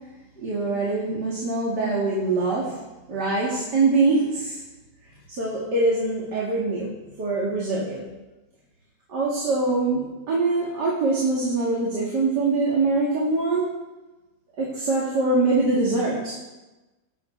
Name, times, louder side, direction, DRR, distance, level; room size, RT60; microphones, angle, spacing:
voice 1, 0.4-2.8 3.1-4.6 5.3-6.9 7.2-8.1 9.1-13.7 14.6-16.3, right 3 dB, 70° right, -5 dB, 2.9 m, -23 dB
18.5 x 9.0 x 4.5 m, 1.1 s
omnidirectional pair, 1.9 m